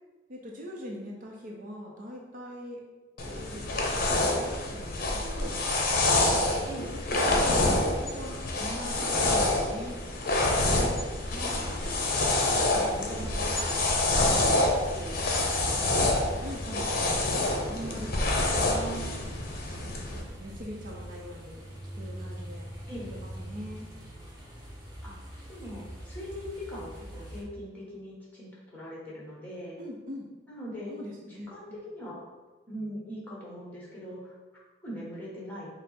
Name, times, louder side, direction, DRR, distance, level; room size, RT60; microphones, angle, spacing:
voice 1, 0.3-2.8 3.2-5.6 6.8-10.0 16.4-17.3 17.7-18.5 19.8-21.6 21.9-22.7 23.1-23.9 29.8-30.3 30.9-31.5, equal, 45° right, -1 dB, 0.6 m, -42 dB
sound 1, 3.2-20.2, left 2 dB, 55° left, 0.7 m, -27 dB
sound 2, 11.2-27.4, equal, 25° right, 1.0 m, -43 dB
voice 2, 11.3-11.6 12.0-14.6 14.9-16.2 18.7-19.2 22.9-23.1 25.0-25.1 25.5-29.8 30.5-30.9 31.2-32.3 32.7-34.4 34.8-35.7, equal, 10° left, -6 dB, 1.2 m, -41 dB
5.4 x 2.0 x 4.2 m, 1.3 s
head